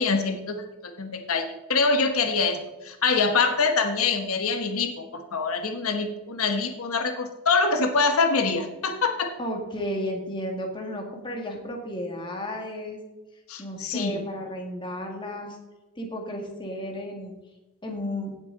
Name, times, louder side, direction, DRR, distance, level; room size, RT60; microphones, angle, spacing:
voice 1, 0.0-9.3 13.5-14.2, left 4 dB, 80° left, 6 dB, 1.1 m, -25 dB
voice 2, 9.4-13.0 13.6-15.6 16.0-17.3 17.8-18.3, equal, 20° left, 1 dB, 1.9 m, -33 dB
16.5 x 7.2 x 3.9 m, 1.0 s
head